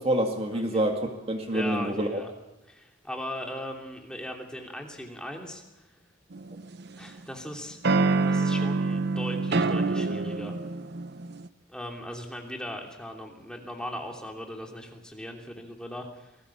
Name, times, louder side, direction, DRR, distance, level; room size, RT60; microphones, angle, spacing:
voice 1, 0.0-2.2, right 1 dB, 30° right, 4 dB, 2.1 m, -27 dB
voice 2, 0.5-0.8 1.5-2.3 2.7-5.9 7.0-7.8 8.2-10.6 11.7-16.4, equal, 5° left, 1 dB, 3.0 m, -38 dB
sound 1, 6.3-7.2 7.8-11.5, right 3 dB, 55° right, 0.8 m, -26 dB
28.0 x 19.5 x 7.3 m, 0.97 s
head